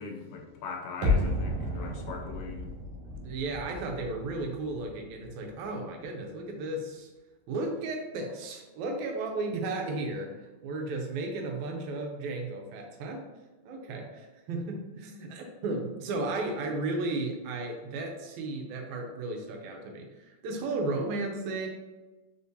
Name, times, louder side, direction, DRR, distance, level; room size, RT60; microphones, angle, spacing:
voice 1, 0.0-2.7, left 5 dB, 85° left, 2 dB, 2.0 m, -40 dB
sound 1, 1.0-6.0 6.2-6.3, left 2 dB, 60° right, 1.5 m, -32 dB
voice 2, 3.1-7.1 7.5-13.2 13.7-21.7, right 2 dB, 80° right, 2 dB, 2.0 m, -34 dB
4.4 x 3.5 x 2.6 m, 1.1 s
omnidirectional pair, 3.4 m